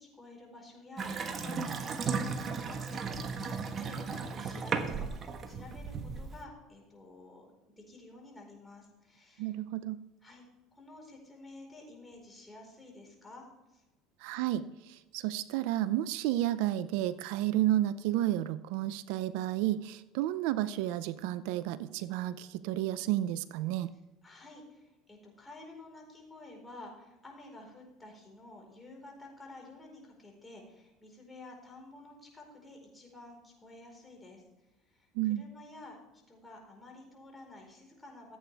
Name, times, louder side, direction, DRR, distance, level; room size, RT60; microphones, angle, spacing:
voice 1, 0.0-9.5 10.2-10.4 10.7-13.8 23.8-23.9 24.2-36.0 36.3-38.4, left 2 dB, 15° left, 0 dB, 4.6 m, -51 dB
Water tap faucet / Sink (filling or washing) / Bathtub (filling or washing), 1.0-6.4, right 5 dB, 40° right, 1.3 m, -35 dB
voice 2, 9.4-10.0 14.2-23.9 35.1-35.4, right 14 dB, 75° right, 15 dB, 0.5 m, -31 dB
15.5 x 8.5 x 3.5 m, 1.0 s
supercardioid pair, 90°, 0 cm